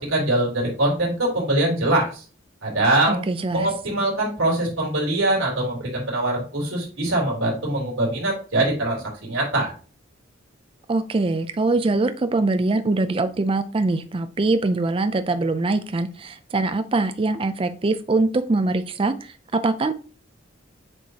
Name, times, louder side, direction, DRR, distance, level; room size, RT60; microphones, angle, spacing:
voice 1, 0.0-2.2 2.6-3.2 3.5-9.7, right 1 dB, 80° right, -2 dB, 3.2 m, -23 dB
voice 2, 3.1-3.7 10.9-19.9, right 3 dB, 25° right, 10 dB, 0.4 m, -23 dB
7.7 x 4.7 x 2.8 m, 0.37 s
head